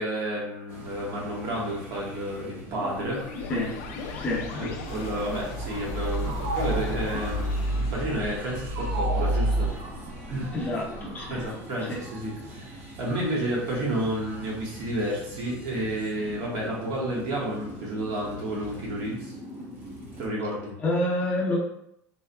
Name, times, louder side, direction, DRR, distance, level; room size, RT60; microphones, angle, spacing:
voice 1, 0.0-3.5 4.5-9.7 10.3-10.5 11.3-19.3 20.2-20.7, right 1 dB, 55° right, -4 dB, 1.3 m, -31 dB
sound 1, 0.7-20.3, right 1 dB, 25° right, 1.0 m, -43 dB
sound 2, 2.9-9.7, equal, 70° left, 0.5 m, -30 dB
voice 2, 4.1-4.5 10.5-11.4 11.9-12.0 20.8-21.6, left 1 dB, 20° left, -3 dB, 0.6 m, -28 dB
sound 3, 4.8-11.5, right 2 dB, 75° right, 1.0 m, -37 dB
3.9 x 3.4 x 2.3 m, 0.75 s
cardioid pair, 175°, 8 cm